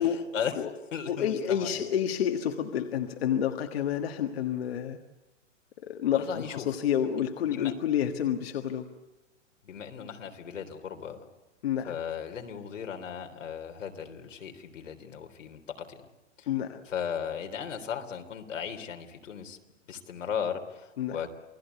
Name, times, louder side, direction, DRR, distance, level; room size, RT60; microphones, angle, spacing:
voice 1, 0.0-0.7 0.9-1.8 6.1-6.7 7.5-7.7 9.6-11.3 11.9-16.0 16.4-16.5 16.9-19.6 19.9-21.3, left 7 dB, 85° left, 5 dB, 3.7 m, -36 dB
voice 2, 1.1-5.0 5.8-8.9 11.6-12.0 16.5-16.8 21.0-21.2, left 9 dB, 55° left, 6 dB, 1.6 m, -29 dB
28.5 x 19.0 x 8.3 m, 1.0 s
hypercardioid pair, 170°, 37 cm